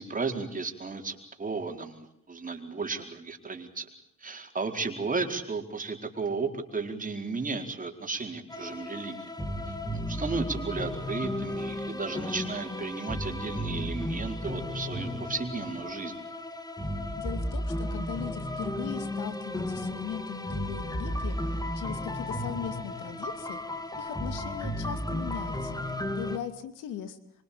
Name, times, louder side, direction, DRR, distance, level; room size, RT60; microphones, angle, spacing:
voice 1, 0.0-3.9 4.2-9.3 9.7-16.1, right 4 dB, 25° right, 4 dB, 4.7 m, -34 dB
sound 1, 8.5-26.4, left 1 dB, 15° left, 2.9 m, -34 dB
voice 2, 17.2-21.3 21.7-23.6 24.0-25.8 26.2-27.2, left 9 dB, 90° left, 11 dB, 2.6 m, -39 dB
25.0 x 25.0 x 8.7 m, 0.66 s
cardioid pair, 90°, 30 cm